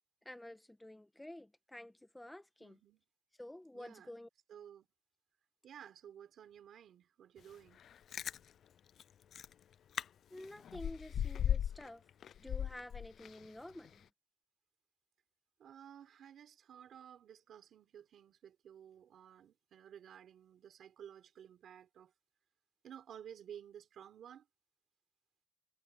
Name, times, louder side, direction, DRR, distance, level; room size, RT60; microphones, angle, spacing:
voice 1, 0.2-2.8 3.4-4.3 10.3-12.0 12.4-14.0, left 1 dB, 5° left, 1.3 m, -50 dB
voice 2, 2.6-3.0 3.7-4.9 5.6-7.8 15.6-22.1 22.8-24.5, right 9 dB, 60° right, 4.1 m, -54 dB
Chewing mastication, 7.9-8.4 9.0-9.1 9.3-9.5 9.9-10.0 10.4-11.9 12.2-13.5 13.8-13.9, left 9 dB, 55° left, 0.3 m, -36 dB
cardioid pair, 160°, 0 cm